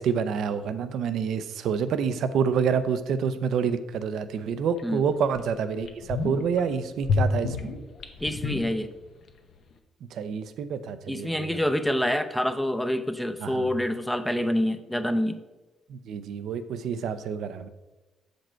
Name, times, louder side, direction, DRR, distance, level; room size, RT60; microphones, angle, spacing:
voice 1, 0.0-7.7 10.1-11.6 13.4-13.7 15.9-17.7, right 6 dB, 75° right, 12 dB, 0.5 m, -28 dB
sound 1, 4.8-4.9 5.4-5.5 5.8-6.6 7.0-9.3 9.5-9.6, left 4 dB, 60° left, 0.8 m, -28 dB
voice 2, 8.2-8.9 11.1-15.5, equal, 5° left, 10 dB, 0.6 m, -27 dB
7.3 x 5.2 x 4.4 m, 1.1 s
cardioid pair, 90°, 0 cm